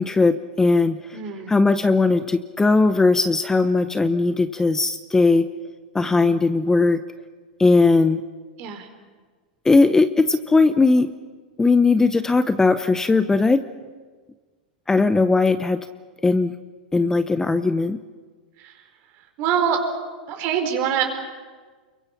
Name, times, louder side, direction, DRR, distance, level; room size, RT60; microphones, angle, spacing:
voice 1, 0.0-1.0 1.5-5.4 5.9-7.0 7.6-8.2 9.6-11.1 11.6-13.6 14.9-15.8 16.2-16.5 16.9-18.0, left 3 dB, 10° left, 12 dB, 0.8 m, -18 dB
voice 2, 1.1-1.5 6.1-6.3 8.6-8.9 18.6-18.8 19.4-19.8 20.3-21.0, right 8 dB, 50° right, 5 dB, 4.4 m, -25 dB
28.5 x 23.0 x 5.9 m, 1.5 s
hypercardioid pair, 110°, 5 cm